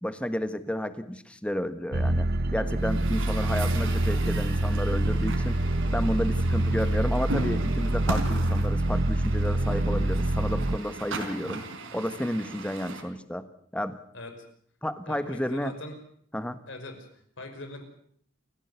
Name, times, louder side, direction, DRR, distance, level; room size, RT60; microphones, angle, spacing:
voice 1, 0.0-2.3 2.5-5.6 5.9-11.6 11.9-13.5 13.7-14.0 14.8-15.7 16.3-16.6, equal, 5° left, 11 dB, 1.4 m, -31 dB
sound 1, 1.9-10.8, right 1 dB, 55° right, 1.1 m, -26 dB
Truck, 2.8-13.0, right 2 dB, 80° right, 4.2 m, -37 dB
voice 2, 15.0-15.9 16.7-17.1 17.4-17.8, left 2 dB, 70° left, 6 dB, 5.7 m, -41 dB
28.5 x 15.5 x 8.2 m, 0.65 s
head